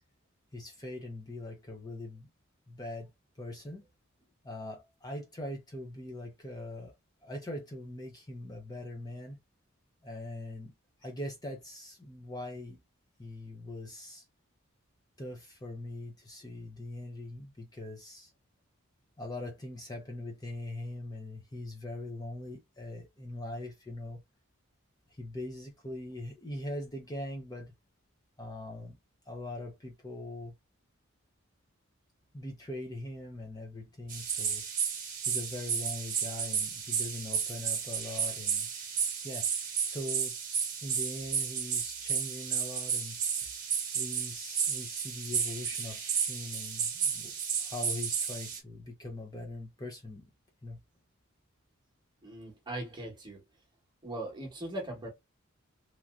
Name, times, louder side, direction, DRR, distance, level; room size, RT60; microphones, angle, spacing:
voice 1, 0.5-2.3 2.7-3.1 3.4-3.8 4.4-6.9 7.2-9.4 10.0-10.7 11.0-12.8 13.2-14.2 15.2-18.3 19.2-24.2 25.1-27.7 28.4-29.0 29.3-30.5 32.3-34.6 35.3-38.7 39.2-39.5 39.9-40.3 40.8-43.2 43.9-47.3 47.6-50.3 50.6-50.8, left 1 dB, 20° left, 0.6 m, -41 dB
sound 1, 34.1-48.6, right 7 dB, 40° right, 1.0 m, -33 dB
voice 2, 52.2-53.4 54.0-55.1, right 1 dB, 20° right, 1.1 m, -39 dB
3.0 x 2.7 x 2.3 m
head